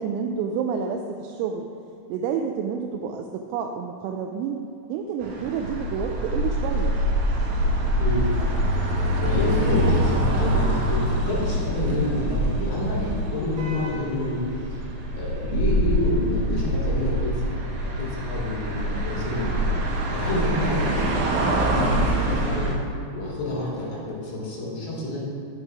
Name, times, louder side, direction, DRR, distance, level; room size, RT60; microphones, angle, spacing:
voice 1, 0.0-1.7 2.1-4.6 4.9-7.0, right 6 dB, 85° right, 3 dB, 3.2 m, -29 dB
sound 1, 5.2-22.7, equal, 70° right, 3.2 m, -25 dB
voice 2, 8.6-14.4 14.7-17.7 18.0-21.0 21.5-22.8 23.1-25.3, left 1 dB, 45° left, -6 dB, 3.2 m, -29 dB
9.0 x 7.7 x 4.8 m, 2.6 s
omnidirectional pair, 5.9 m